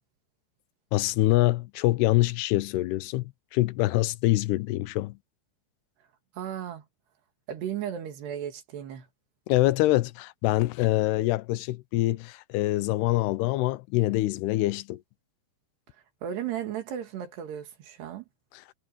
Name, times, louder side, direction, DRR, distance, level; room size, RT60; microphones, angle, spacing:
voice 1, 0.9-5.2 9.5-15.0, left 18 dB, 90° left, 2.7 m, -25 dB
voice 2, 6.3-6.8 7.5-9.1 16.2-18.2, right 9 dB, 85° right, 4.5 m, -35 dB
omnidirectional pair, 4.7 m